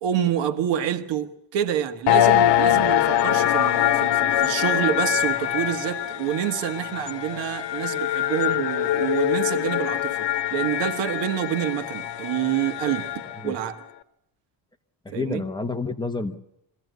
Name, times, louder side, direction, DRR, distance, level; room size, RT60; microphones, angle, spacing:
voice 1, 0.0-13.8 15.1-15.4, right 10 dB, 90° right, 1.5 m, -27 dB
sound 1, 2.1-13.5, left 12 dB, 75° left, 1.1 m, -23 dB
voice 2, 15.0-16.4, left 3 dB, 10° left, 1.0 m, -29 dB
23.0 x 15.5 x 9.3 m
cardioid pair, 160°, 42 cm